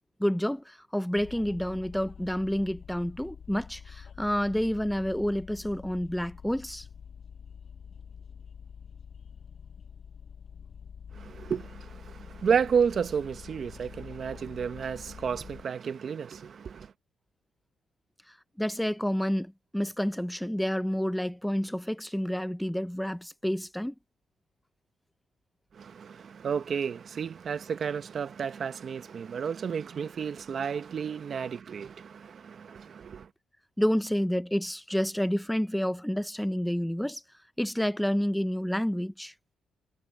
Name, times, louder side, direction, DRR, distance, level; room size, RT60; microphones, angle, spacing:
voice 1, 0.2-6.8 18.6-23.9 33.8-37.2 37.6-39.3, equal, 5° left, 0.7 m, -29 dB
sound 1, 1.1-15.6, left 7 dB, 50° left, 6.7 m, -47 dB
voice 2, 11.1-16.9 25.7-33.3, right 6 dB, 50° right, 0.9 m, -32 dB
cardioid pair, 90°, 0 cm